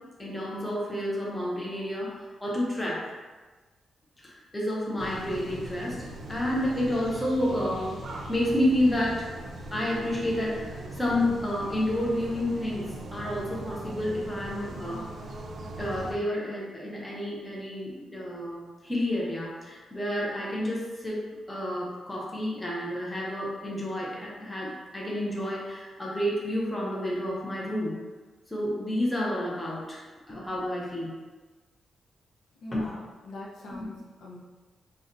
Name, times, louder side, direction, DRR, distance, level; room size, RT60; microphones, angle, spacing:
voice 1, 0.2-3.1 4.2-6.0 6.3-8.0 8.3-9.3 9.7-15.1 15.8-21.2 21.5-28.0 28.5-31.1 32.7-32.9 33.7-33.9, left 1 dB, 10° left, -4 dB, 0.5 m, -30 dB
sound 1, 5.0-16.1, right 1 dB, 55° right, 0.4 m, -40 dB
voice 2, 32.6-34.4, left 2 dB, 75° left, -4 dB, 0.6 m, -42 dB
2.5 x 2.1 x 3.8 m, 1.3 s
wide cardioid pair, 175°, 0 cm